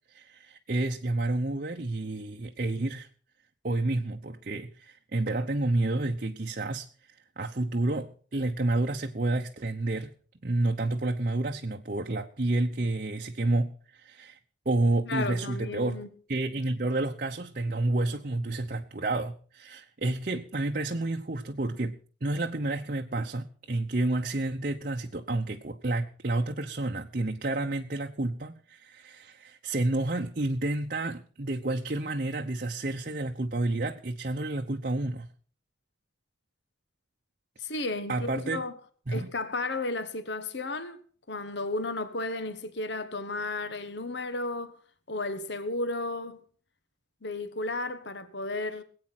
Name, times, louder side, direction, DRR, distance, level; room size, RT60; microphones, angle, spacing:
voice 1, 0.1-3.1 3.6-6.9 7.4-10.1 10.4-14.4 14.7-16.0 16.3-35.3 38.1-38.6 39.1-39.3, right 2 dB, 45° right, 0.8 m, -30 dB
voice 2, 15.1-16.1 37.6-38.7 39.1-41.0 41.3-44.8 45.1-46.4 47.2-48.8, left 2 dB, 60° left, 1.4 m, -33 dB
20.5 x 8.8 x 6.0 m
head